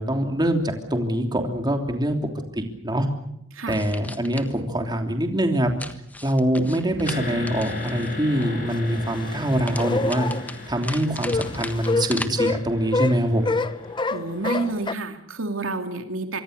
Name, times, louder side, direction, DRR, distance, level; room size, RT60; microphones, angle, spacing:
voice 1, 0.0-2.2 2.5-3.1 3.7-5.7 6.2-10.3 10.7-13.6, right 1 dB, 20° right, 4 dB, 3.2 m, -24 dB
sound 1, 3.7-4.6 5.8-8.5 9.7-12.3, left 2 dB, 10° left, 1.4 m, -37 dB
sound 2, 6.8-7.1 7.6-7.7 8.4-10.5 11.0-14.9, left 3 dB, 25° left, 0.9 m, -27 dB
sound 3, 7.1-14.8, left 3 dB, 40° left, 7.2 m, -37 dB
voice 2, 14.1-16.4, right 3 dB, 80° right, 5 dB, 2.7 m, -29 dB
26.0 x 24.5 x 6.7 m, 0.77 s
head